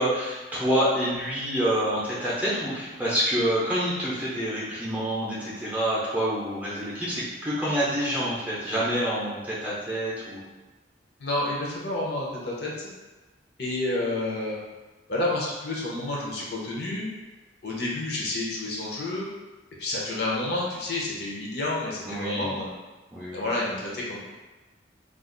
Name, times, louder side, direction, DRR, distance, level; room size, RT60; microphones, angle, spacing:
voice 1, 0.0-10.4 22.1-22.6 23.1-23.4, equal, 10° right, -8 dB, 0.7 m, -27 dB
voice 2, 11.2-12.9 13.6-14.6 15.1-17.1 17.6-19.3 19.8-22.7 23.3-24.2, left 2 dB, 60° left, -4 dB, 0.7 m, -29 dB
2.5 x 2.4 x 3.8 m, 1.2 s
head